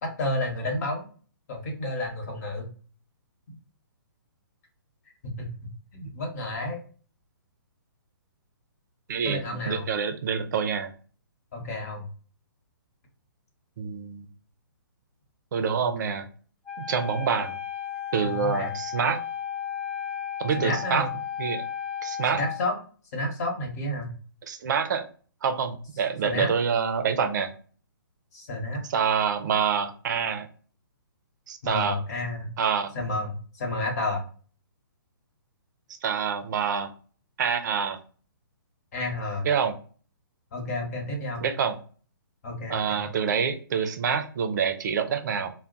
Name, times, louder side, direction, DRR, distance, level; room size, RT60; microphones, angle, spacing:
voice 1, 0.0-1.1 1.5-2.7 5.2-6.8 9.2-9.8 11.5-12.0 18.2-18.7 20.5-21.1 22.3-22.7 23.1-24.1 26.2-26.5 28.3-28.8 31.6-32.5 32.9-34.2 38.9-39.5 40.5-41.4 42.4-43.0, left 1 dB, 45° left, 1 dB, 1.2 m, -31 dB
voice 2, 9.7-10.9 13.8-14.3 15.5-16.3 16.8-17.6 18.1-19.2 20.4-21.1 21.4-21.6 22.0-22.4 24.5-25.1 25.4-27.5 28.9-30.5 31.5-32.0 32.6-32.9 36.0-36.9 37.4-38.0 39.4-39.7 41.4-41.8 42.7-45.5, right 6 dB, 55° right, 8 dB, 0.5 m, -26 dB
Wind instrument woodwind instrument, 16.7-22.6, left 9 dB, 5° left, 0.6 m, -34 dB
2.2 x 2.1 x 3.8 m, 0.41 s
hypercardioid pair, 140°, 12 cm